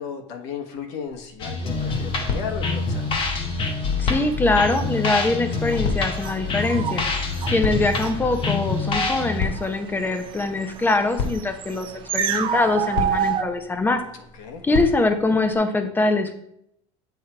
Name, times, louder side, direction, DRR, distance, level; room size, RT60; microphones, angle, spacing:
voice 1, 0.0-3.1 14.4-14.6, left 6 dB, 75° left, 4 dB, 1.3 m, -34 dB
sound 1, 1.1-15.6, left 4 dB, 55° left, 1.5 m, -34 dB
sound 2, 1.4-9.4, left 3 dB, 35° left, 1.1 m, -26 dB
sound 3, 1.8-13.4, right 8 dB, 35° right, 0.5 m, -32 dB
voice 2, 4.0-7.0 7.5-11.9 12.1-14.0 14.6-16.3, left 2 dB, 15° left, 7 dB, 0.8 m, -23 dB
8.0 x 3.7 x 4.5 m, 0.73 s
supercardioid pair, 140°, 15 cm